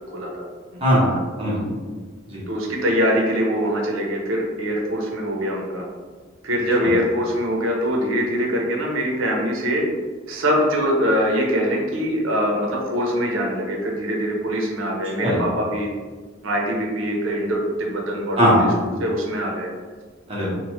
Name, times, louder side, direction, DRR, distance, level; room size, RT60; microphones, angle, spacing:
voice 1, 0.1-0.5 0.7-0.9 2.5-5.9 6.4-9.9 10.3-15.9 16.4-18.7 19.0-19.7, equal, 75° right, -1 dB, 0.6 m, -23 dB
voice 2, 0.8-1.8 2.3-2.4 6.8-6.9 15.2-15.4 18.4-18.9 20.3-20.6, equal, 30° right, -7 dB, 0.9 m, -20 dB
3.0 x 2.2 x 2.9 m, 1.4 s
head